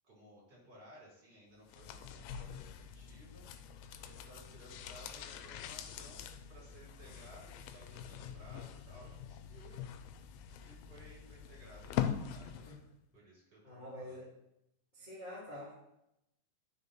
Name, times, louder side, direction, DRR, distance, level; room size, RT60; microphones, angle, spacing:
voice 1, 0.0-3.4 3.8-9.8 10.6-12.8 13.1-14.2, right 1 dB, 30° right, -6 dB, 3.7 m, -58 dB
sound 1, 1.7-12.9 13.2-13.3, left 9 dB, 85° left, 2.3 m, -43 dB
voice 2, 13.6-14.3 14.9-15.7, left 1 dB, 20° left, -9 dB, 1.4 m, -47 dB
11.5 x 5.7 x 3.1 m, 0.82 s
omnidirectional pair, 4.3 m